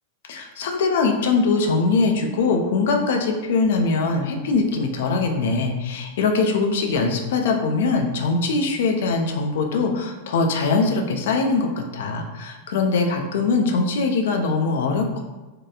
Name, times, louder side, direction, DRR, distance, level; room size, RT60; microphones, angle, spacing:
voice 1, 0.3-15.2, left 4 dB, 55° left, 3 dB, 0.3 m, -22 dB
2.8 x 2.2 x 2.3 m, 1.1 s
figure-of-eight pair, 90°, 0 cm